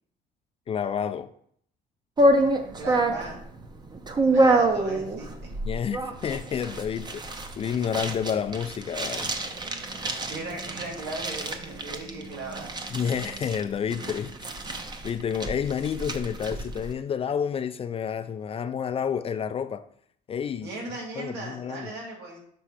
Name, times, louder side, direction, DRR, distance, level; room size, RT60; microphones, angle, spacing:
voice 1, 0.7-1.3 5.6-9.3 12.9-14.5 15.0-19.8 20.3-20.7 21.2-21.9, left 7 dB, 35° left, 0.4 m, -30 dB
sound 1, 2.2-16.9, right 1 dB, 25° right, 0.7 m, -27 dB
voice 2, 2.8-3.4 4.2-5.6 10.3-12.8 20.6-22.5, right 3 dB, 80° right, 2.1 m, -37 dB
6.1 x 3.2 x 5.7 m
cardioid pair, 110°, 17 cm